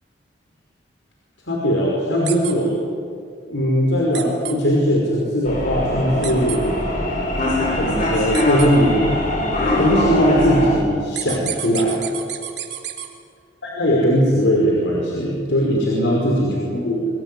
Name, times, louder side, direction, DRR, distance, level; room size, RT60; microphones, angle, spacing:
voice 1, 1.5-2.7 3.5-6.7 7.7-9.1 9.8-12.0 13.6-17.1, equal, 75° left, -3 dB, 5.5 m, -19 dB
sound 1, 2.2-2.5 4.1-4.5 6.2-6.6 8.3-8.7 11.1-13.1, right 12 dB, 60° right, 3.0 m, -29 dB
sound 2, 5.4-10.7, left 1 dB, 45° left, 7.6 m, -22 dB
26.0 x 20.5 x 10.0 m, 2.3 s
head